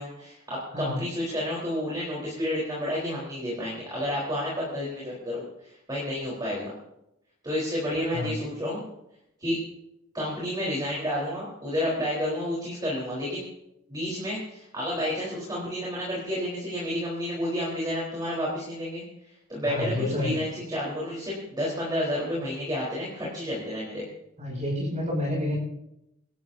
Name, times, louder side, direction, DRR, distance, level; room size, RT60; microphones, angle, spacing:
voice 1, 0.0-6.7 7.4-8.8 9.4-9.6 10.1-13.4 13.9-19.0 19.5-19.9 20.2-24.0, equal, 20° right, -6 dB, 4.2 m, -30 dB
voice 2, 0.7-1.0 8.1-8.4 19.6-20.4 24.4-25.6, left 1 dB, 35° right, -7 dB, 7.4 m, -29 dB
27.5 x 12.5 x 2.8 m, 0.84 s
head